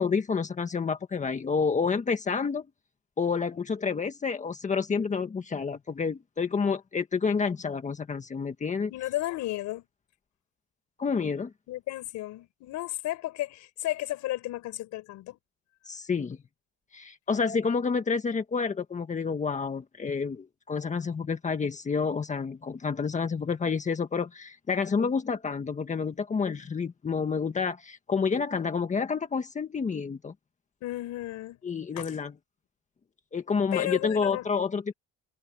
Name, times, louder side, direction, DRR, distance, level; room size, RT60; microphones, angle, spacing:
voice 1, 0.0-2.7 3.2-8.9 11.0-11.5 15.8-16.4 16.9-30.3 31.6-32.3 33.3-34.9, left 5 dB, 25° left, 1.6 m, -29 dB
voice 2, 8.9-9.8 11.7-15.4 30.8-31.6 32.0-32.1 33.7-34.5, left 16 dB, 75° left, 4.8 m, -33 dB
cardioid pair, 135°, 29 cm